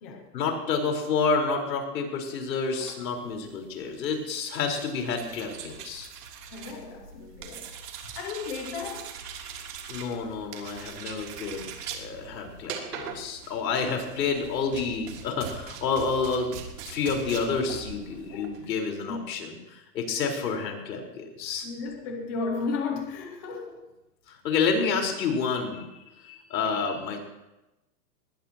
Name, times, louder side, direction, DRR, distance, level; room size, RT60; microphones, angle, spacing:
voice 1, 0.3-6.1 9.9-11.7 11.9-16.5 16.8-21.7 24.3-25.9 26.2-27.2, left 5 dB, 80° left, 1 dB, 4.7 m, -29 dB
sound 1, 2.7-18.7, right 6 dB, 65° right, 3.3 m, -42 dB
voice 2, 6.5-7.7 8.1-9.1 18.3-18.7 19.1-19.2 21.6-23.9 26.6-26.8, left 4 dB, 10° left, 2 dB, 0.5 m, -34 dB
20.0 x 20.0 x 3.0 m, 0.99 s
supercardioid pair, 170°, 49 cm